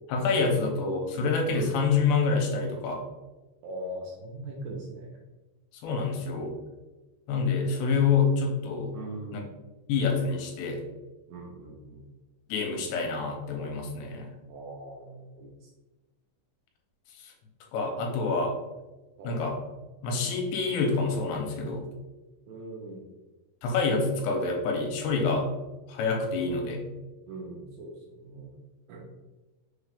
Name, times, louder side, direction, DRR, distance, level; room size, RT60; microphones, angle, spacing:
voice 1, 0.1-3.0 5.8-6.6 7.3-8.9 9.3-9.4 9.9-10.8 12.5-14.3 17.2-17.3 17.7-18.6 19.2-19.6 20.0-21.9 23.6-25.5 25.9-26.8, left 4 dB, 85° left, 1 dB, 2.7 m, -27 dB
voice 2, 3.6-5.1 8.9-9.6 11.3-12.0 14.4-15.7 19.2-19.5 22.5-23.1 27.3-28.6 28.9-29.1, right 1 dB, 80° right, -1 dB, 2.4 m, -41 dB
6.2 x 3.3 x 2.4 m, 1.1 s
omnidirectional pair, 5.0 m